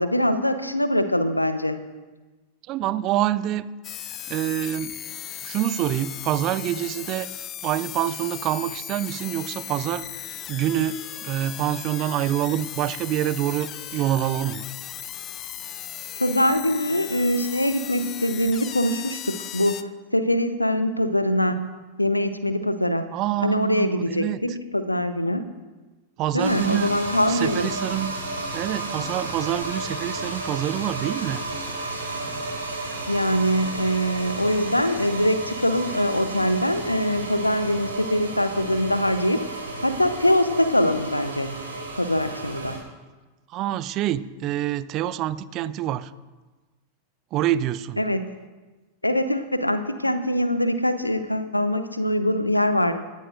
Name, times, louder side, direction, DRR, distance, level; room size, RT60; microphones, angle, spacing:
voice 1, 0.0-1.8 16.2-23.1 23.4-25.5 26.3-27.7 33.1-39.4 39.8-41.6 42.0-42.8 48.0-48.3 49.0-52.9, equal, 85° left, 11 dB, 0.9 m, -23 dB
voice 2, 2.7-3.6 4.3-4.9 5.4-7.3 7.6-10.1 10.5-14.7 23.1-24.6 26.2-26.9 27.3-28.1 28.5-31.4 43.5-46.1 47.3-48.0, right 12 dB, 35° right, 16 dB, 0.5 m, -26 dB
sound 1, 3.8-19.8, left 11 dB, 30° left, 0.6 m, -37 dB
sound 2, 26.4-42.8, right 2 dB, 75° right, 4.8 m, -32 dB
19.5 x 13.5 x 2.6 m, 1.2 s
figure-of-eight pair, 90°, 0 cm